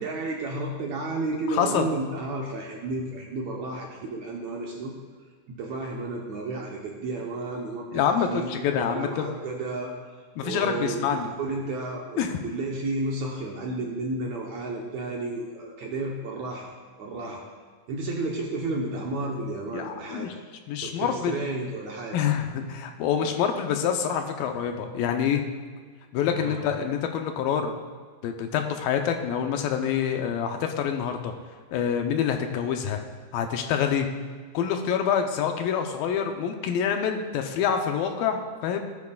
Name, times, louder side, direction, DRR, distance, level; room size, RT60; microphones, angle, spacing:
voice 1, 0.0-4.9 5.5-9.9 10.4-16.7 17.0-17.4 17.9-20.4 20.8-22.2 26.3-26.7, right 2 dB, 70° right, -1 dB, 1.8 m, -32 dB
voice 2, 1.5-1.9 7.9-9.3 10.4-11.3 12.2-12.3 19.7-20.3 20.7-21.4 22.1-25.4 26.1-27.7 28.2-31.3 31.7-33.0 33.3-34.1 34.5-38.8, left 8 dB, 85° left, 5 dB, 2.5 m, -26 dB
16.5 x 8.3 x 2.3 m, 1.6 s
omnidirectional pair, 4.1 m